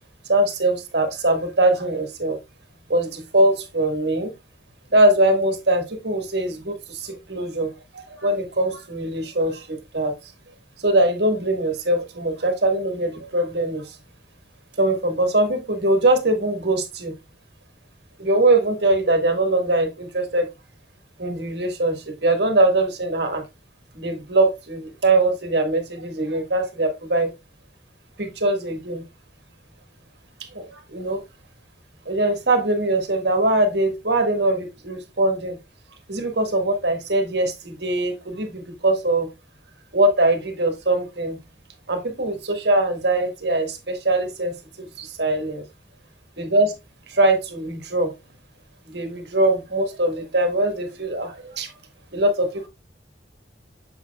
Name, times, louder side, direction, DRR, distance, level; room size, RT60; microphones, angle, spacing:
voice 1, 0.3-2.4 2.9-4.3 4.9-10.1 10.8-14.0 14.8-17.1 18.2-20.5 21.2-23.4 23.9-27.3 28.2-29.0 30.5-31.2 32.0-35.6 36.1-39.3 39.9-41.4 41.9-45.6 46.4-46.7 47.1-48.1 48.9-51.7 52.1-52.7, right 2 dB, 70° right, 5 dB, 1.8 m, -22 dB
7.3 x 6.7 x 2.3 m, 0.23 s
head